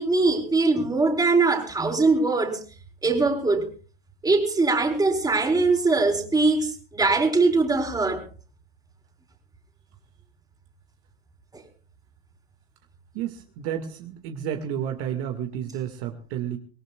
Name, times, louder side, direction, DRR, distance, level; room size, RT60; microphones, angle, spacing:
voice 1, 0.0-2.6 3.0-3.7 4.2-8.2 11.5-11.6, right 3 dB, 10° right, 4 dB, 3.9 m, -22 dB
voice 2, 13.1-16.6, right 9 dB, 55° right, 5 dB, 2.0 m, -31 dB
25.0 x 18.0 x 2.4 m, 0.37 s
hypercardioid pair, 110°, 31 cm